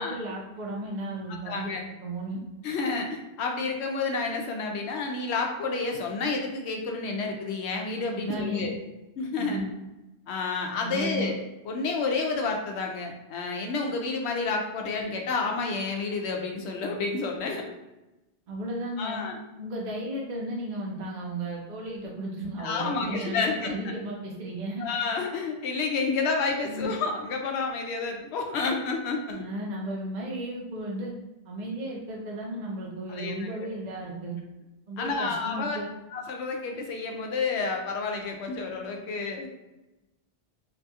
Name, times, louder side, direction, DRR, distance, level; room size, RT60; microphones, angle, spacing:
voice 1, 0.0-1.7 2.0-2.4 8.1-8.7 9.4-9.6 10.8-11.3 18.5-19.2 19.6-24.8 26.6-26.9 29.3-31.1 31.5-34.4 34.9-35.9, right 1 dB, 55° right, -3 dB, 0.7 m, -34 dB
voice 2, 1.3-1.8 2.6-8.7 9.2-9.6 10.3-11.4 11.6-17.6 19.0-19.4 22.6-23.9 24.8-29.4 33.1-33.7 35.0-35.8 36.1-39.5, left 4 dB, 85° left, 2 dB, 0.8 m, -30 dB
2.8 x 2.3 x 2.7 m, 1.0 s
omnidirectional pair, 1.1 m